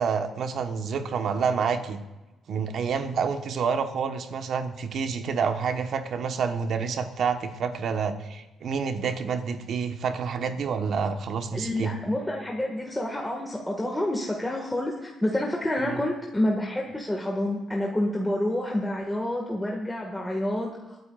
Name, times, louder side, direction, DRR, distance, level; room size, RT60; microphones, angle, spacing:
voice 1, 0.0-2.0 2.5-11.9 15.8-16.0, right 6 dB, 65° right, 7 dB, 1.2 m, -28 dB
voice 2, 11.5-21.0, left 1 dB, 10° left, -1 dB, 1.8 m, -28 dB
25.0 x 9.5 x 2.4 m, 1.1 s
cardioid pair, 90°, 0 cm